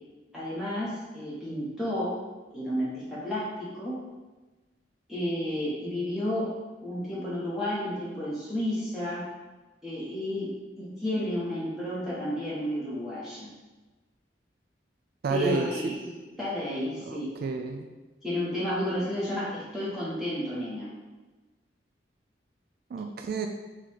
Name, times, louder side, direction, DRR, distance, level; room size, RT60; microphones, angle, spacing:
voice 1, 0.3-2.2 2.5-4.0 5.1-6.5 6.8-9.2 9.8-10.5 10.8-13.5 15.3-17.3 18.2-20.9, left 1 dB, ahead, -10 dB, 1.0 m, -31 dB
voice 2, 15.2-16.0 17.0-17.9 22.9-23.5, right 4 dB, 60° right, 4 dB, 0.3 m, -30 dB
3.9 x 2.9 x 4.6 m, 1.2 s
head